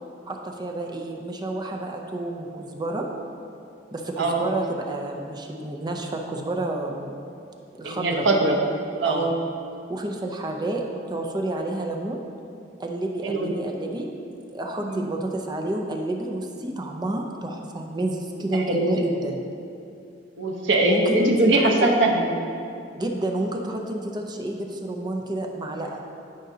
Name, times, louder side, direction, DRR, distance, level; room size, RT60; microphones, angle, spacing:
voice 1, 0.3-3.1 3.9-7.2 7.8-8.3 9.0-9.3 9.9-12.2 12.8-14.1 14.5-19.4 20.8-21.7 23.0-26.0, right 1 dB, 25° right, 1 dB, 0.5 m, -30 dB
voice 2, 7.8-8.6 9.0-9.3 13.2-13.5 14.8-15.0 18.5-19.0 20.4-22.3, right 2 dB, 90° right, 1 dB, 1.0 m, -21 dB
13.0 x 5.0 x 2.8 m, 2.6 s
head